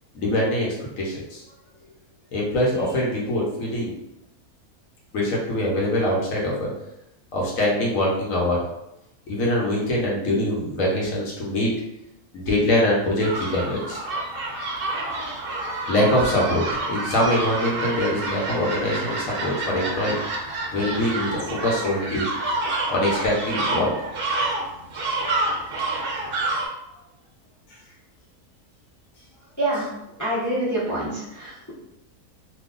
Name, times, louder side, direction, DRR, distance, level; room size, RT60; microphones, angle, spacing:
voice 1, 0.1-1.4 2.3-3.9 5.1-6.7 7.3-8.6 9.3-11.7 12.3-14.0 15.9-20.2 20.7-22.3 22.9-23.9, left 1 dB, 65° left, -3 dB, 1.2 m, -23 dB
sound 1, 13.2-26.7, right 2 dB, 50° right, 0.7 m, -28 dB
voice 2, 30.2-31.7, right 1 dB, 15° left, -8 dB, 0.6 m, -26 dB
3.0 x 2.2 x 3.6 m, 0.87 s
omnidirectional pair, 1.6 m